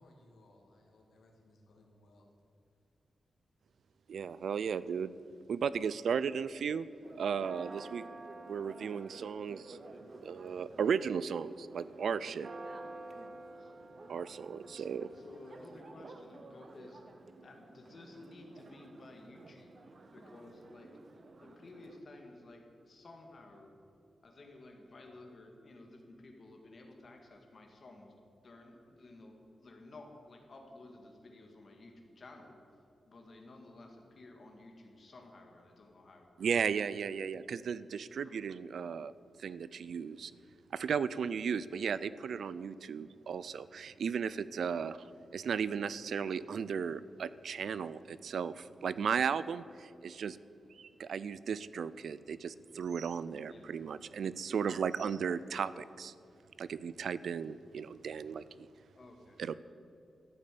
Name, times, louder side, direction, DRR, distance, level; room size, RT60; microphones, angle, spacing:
voice 1, 0.0-2.3, left 1 dB, 85° left, 0 dB, 2.5 m, -62 dB
voice 2, 4.1-5.1 5.5-6.9 7.2-8.0 8.5-9.8 10.2-12.5 14.1-15.1 36.4-39.1 39.4-40.3 40.7-45.0 45.3-50.4 50.8-56.1 56.6-58.7 59.4-59.6, right 6 dB, 70° right, 16 dB, 0.4 m, -35 dB
Church bell, 7.0-22.0, right 2 dB, 40° right, 0.8 m, -51 dB
voice 3, 15.1-19.8 20.1-21.0 21.4-23.7 24.2-28.1 28.4-32.6 33.1-36.3 38.2-38.4 44.7-44.9 53.5-53.7 59.0-59.4, left 2 dB, 40° left, 2 dB, 1.9 m, -54 dB
13.0 x 8.8 x 8.4 m, 2.6 s
wide cardioid pair, 180°, 0 cm